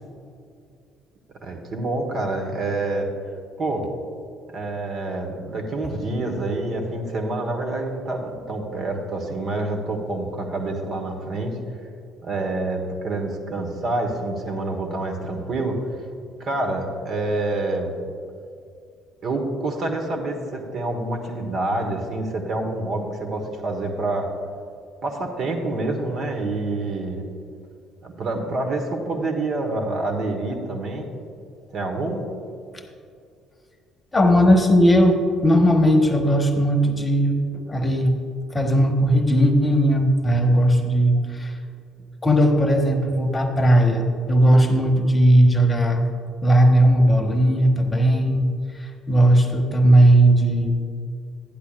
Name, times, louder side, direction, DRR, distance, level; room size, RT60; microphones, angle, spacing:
voice 1, 1.4-3.1 3.6-3.9 4.5-11.6 12.2-15.8 16.4-17.9 19.2-24.3 25.0-27.2 28.0-31.1 31.7-32.3, right 2 dB, 50° right, 2 dB, 1.3 m, -27 dB
voice 2, 34.1-38.1 38.5-41.6 42.2-46.0 46.4-48.5 48.8-50.8, equal, 20° left, 5 dB, 1.2 m, -17 dB
12.0 x 10.0 x 2.5 m, 2.4 s
hypercardioid pair, 55°, 0 cm